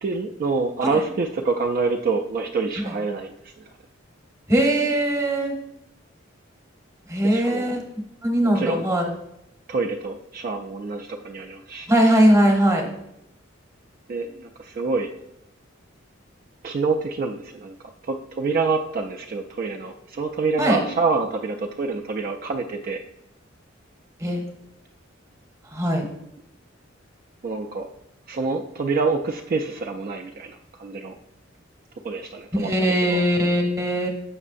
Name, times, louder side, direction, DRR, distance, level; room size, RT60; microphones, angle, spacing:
voice 1, 0.0-3.7 7.2-7.7 8.4-8.8 9.7-11.9 14.1-15.1 16.6-23.0 27.4-27.9 28.3-31.2 32.0-32.7 33.1-33.2, right 4 dB, 45° right, 3 dB, 0.3 m, -27 dB
voice 2, 4.5-5.5 7.1-7.8 8.2-9.1 11.9-12.9 20.6-20.8 24.2-24.4 25.7-26.0 32.5-34.1, right 1 dB, 15° right, 1 dB, 0.9 m, -20 dB
7.1 x 5.3 x 2.5 m, 0.85 s
head